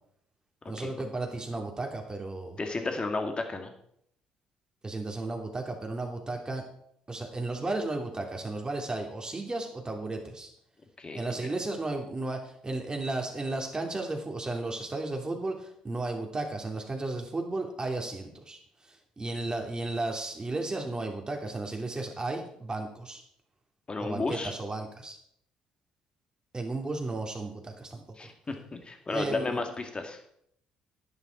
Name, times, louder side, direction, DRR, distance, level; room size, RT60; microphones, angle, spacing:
voice 1, 0.7-2.6 4.8-6.6 7.1-10.5 11.1-18.6 18.8-23.2 24.0-25.2 26.5-28.3 29.1-29.7, right 2 dB, 25° right, 2 dB, 3.0 m, -34 dB
voice 2, 2.6-3.7 11.0-11.3 23.9-24.5 28.2-30.2, left 3 dB, 30° left, 5 dB, 2.4 m, -33 dB
10.5 x 10.0 x 4.6 m, 0.70 s
hypercardioid pair, 55°, 3 cm